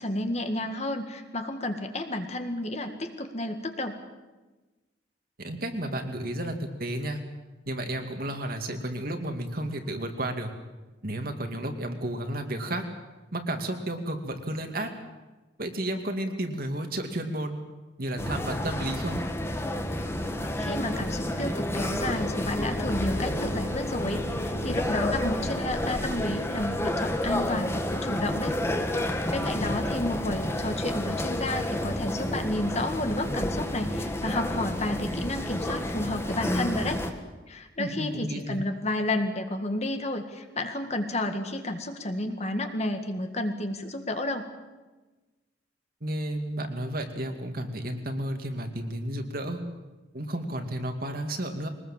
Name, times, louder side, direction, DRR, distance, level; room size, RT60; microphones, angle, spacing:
voice 1, 0.0-4.0 20.6-28.6 29.0-37.0 37.5-44.5, left 1 dB, 35° left, 6 dB, 1.9 m, -31 dB
voice 2, 5.4-7.2 7.7-10.5 11.0-12.8 13.3-14.9 15.6-17.6 18.0-19.2 29.6-29.9 37.8-38.6 46.0-49.6 50.1-51.7, right 1 dB, 50° right, 5 dB, 2.4 m, -32 dB
sound 1, 18.2-37.1, left 1 dB, 15° left, 1.6 m, -30 dB
sound 2, 22.9-26.3, equal, 75° left, 1.6 m, -38 dB
22.5 x 20.0 x 7.5 m, 1.2 s
head